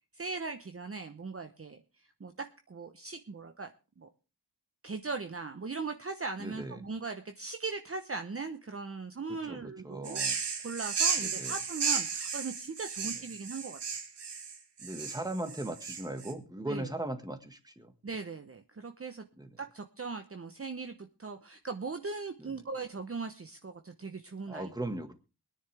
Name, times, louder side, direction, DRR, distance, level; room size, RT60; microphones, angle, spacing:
voice 1, 0.1-1.8 2.2-3.7 4.0-4.1 4.8-10.2 10.6-13.8 16.7-16.9 18.0-19.2 19.6-24.7, right 4 dB, 35° right, 6 dB, 1.0 m, -39 dB
voice 2, 6.4-6.8 9.4-10.4 11.2-11.5 13.0-13.1 14.8-17.9 19.4-19.5 22.4-22.5 24.5-25.1, right 1 dB, 10° right, 7 dB, 1.8 m, -38 dB
sound 1, 10.0-16.3, right 6 dB, 90° right, 2.0 m, -33 dB
23.0 x 10.0 x 3.5 m, 0.33 s
wide cardioid pair, 105°, 40 cm